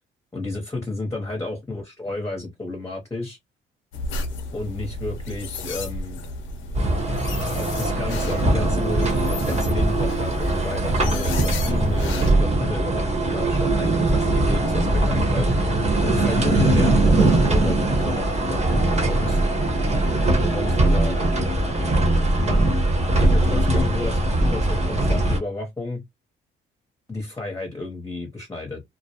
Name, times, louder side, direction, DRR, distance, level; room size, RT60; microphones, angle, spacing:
voice 1, 0.3-3.4 4.5-6.2 7.5-15.5 16.0-19.4 20.1-21.1 22.4-26.0 27.1-28.8, left 2 dB, 15° left, 0.9 m, -31 dB
sound 1, 3.9-12.3, left 1 dB, 80° left, 0.7 m, -32 dB
sound 2, 6.7-25.4, right 2 dB, 35° right, 1.0 m, -21 dB
2.3 x 2.1 x 2.8 m
cardioid pair, 90°, 20 cm